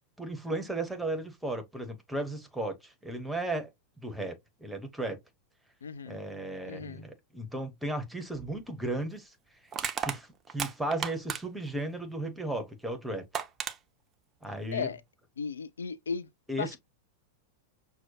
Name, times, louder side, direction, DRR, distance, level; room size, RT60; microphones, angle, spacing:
voice 1, 0.2-3.7 4.0-5.2 6.0-9.3 10.0-13.2 14.4-14.9 16.5-16.8, right 1 dB, 5° right, 1.0 m, -35 dB
voice 2, 5.8-6.2 6.6-7.1 14.7-15.0 15.4-16.3 16.6-16.8, left 5 dB, 70° left, 0.3 m, -35 dB
Crushing, 8.4-8.5 9.7-11.7 12.9-13.0 13.3-13.8, right 7 dB, 25° right, 0.5 m, -34 dB
6.0 x 2.2 x 2.8 m
figure-of-eight pair, 90°, 0 cm